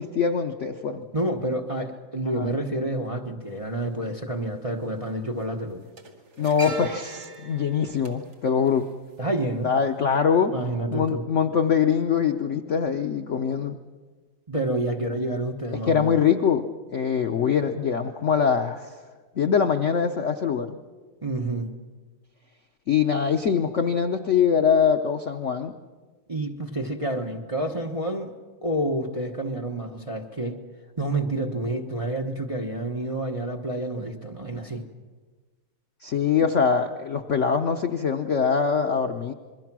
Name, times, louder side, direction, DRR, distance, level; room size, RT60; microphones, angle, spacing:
voice 1, 0.0-1.1 2.3-2.5 6.4-8.9 9.6-10.5 10.9-13.8 15.7-19.0 19.4-20.8 22.9-25.7 36.0-39.3, left 7 dB, 80° left, 7 dB, 0.6 m, -23 dB
voice 2, 1.1-5.8 9.2-9.7 10.5-11.2 14.5-16.2 21.2-21.7 26.3-28.3 28.6-30.5 31.0-34.8, right 1 dB, 25° right, 1 dB, 0.7 m, -29 dB
sound 1, 3.5-3.6 4.8-5.0 5.3-9.6 9.9-10.1, right 3 dB, 45° right, 2.4 m, -41 dB
27.0 x 22.0 x 6.1 m, 1.4 s
omnidirectional pair, 2.4 m